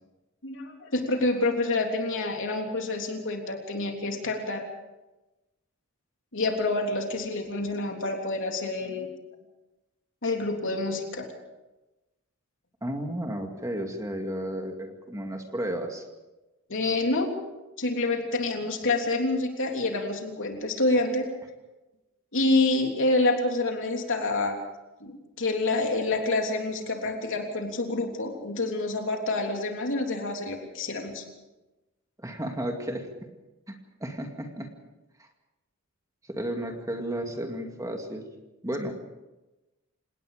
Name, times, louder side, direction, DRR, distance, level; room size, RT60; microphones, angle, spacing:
voice 1, 0.4-4.6 6.3-9.1 10.2-11.3 16.7-17.3 17.8-21.2 22.3-24.6 25.0-31.2, left 2 dB, 60° left, 2 dB, 3.4 m, -27 dB
voice 2, 12.8-16.0 32.2-33.1 33.7-34.7 36.3-38.3 38.6-38.9, right 1 dB, 15° right, 3 dB, 2.2 m, -33 dB
28.5 x 18.0 x 5.1 m, 1.1 s
head